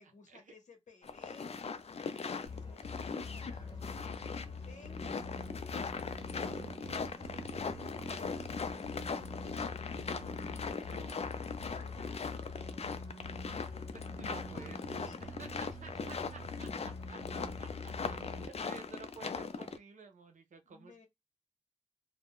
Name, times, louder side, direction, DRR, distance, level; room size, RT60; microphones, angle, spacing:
voice 1, 0.0-1.6 2.0-5.2 5.9-8.5 9.1-10.5 10.7-11.4 11.7-13.8 14.1-14.7 15.0-15.3 20.7-21.1, left 4 dB, 80° left, 0.8 m, -59 dB
sound 1, 1.0-19.8, left 5 dB, 55° left, 0.4 m, -40 dB
sound 2, 2.5-18.5, left 2 dB, 35° left, 0.9 m, -45 dB
voice 2, 10.5-11.4 13.9-21.1, right 4 dB, 85° right, 0.7 m, -53 dB
2.5 x 2.2 x 3.5 m
wide cardioid pair, 75°, 12 cm